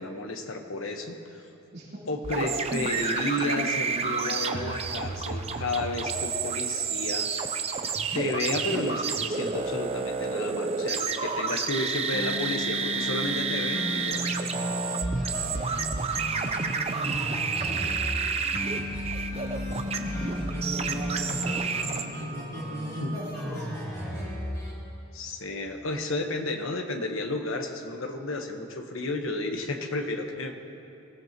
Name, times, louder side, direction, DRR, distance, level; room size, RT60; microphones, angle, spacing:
voice 1, 0.0-1.4 2.1-7.3 8.1-14.5 23.0-23.1 25.1-30.5, left 2 dB, 65° left, 4 dB, 1.2 m, -32 dB
voice 2, 1.7-2.0 16.6-17.9 20.0-21.6 22.0-23.7, equal, 50° right, -8 dB, 3.6 m, -38 dB
sound 1, 2.2-22.0, right 5 dB, 30° right, 0.6 m, -30 dB
sound 2, 11.9-24.8, left 1 dB, 15° left, 2.8 m, -35 dB
23.5 x 16.0 x 3.0 m, 2.8 s
head